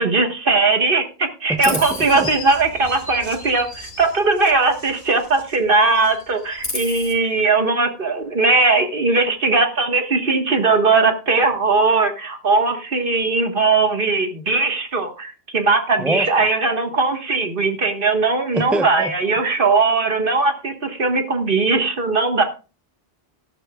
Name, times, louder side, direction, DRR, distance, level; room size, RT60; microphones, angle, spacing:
voice 1, 0.0-22.4, right 3 dB, 55° right, 1.7 m, -19 dB
voice 2, 1.5-1.8 2.1-2.3 16.0-16.3 18.5-19.1, right 1 dB, ahead, 0.6 m, -24 dB
Chirp tweet, 1.6-5.6 5.9-7.1, left 2 dB, 55° left, 4.1 m, -33 dB
13.5 x 12.5 x 2.3 m
omnidirectional pair, 1.1 m